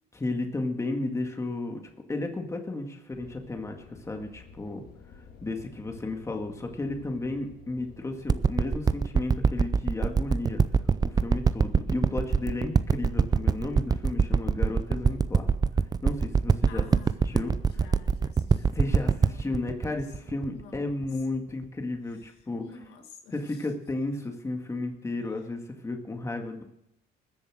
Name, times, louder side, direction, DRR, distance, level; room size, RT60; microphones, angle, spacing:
voice 1, 0.2-1.8 2.1-4.8 5.4-10.6 11.0-15.5 16.0-16.8 17.3-17.5 18.6-22.6 23.3-26.6, left 2 dB, 15° left, 3 dB, 2.0 m, -33 dB
sound 1, 3.1-15.2, left 6 dB, 65° left, 2.1 m, -52 dB
sound 2, 8.3-21.0 21.6-21.7, right 5 dB, 25° right, 0.5 m, -24 dB
voice 2, 16.7-21.2 22.1-23.7 25.4-25.5, left 5 dB, 85° left, 4 dB, 2.3 m, -51 dB
20.5 x 7.2 x 6.3 m, 0.80 s
cardioid pair, 110°, 17 cm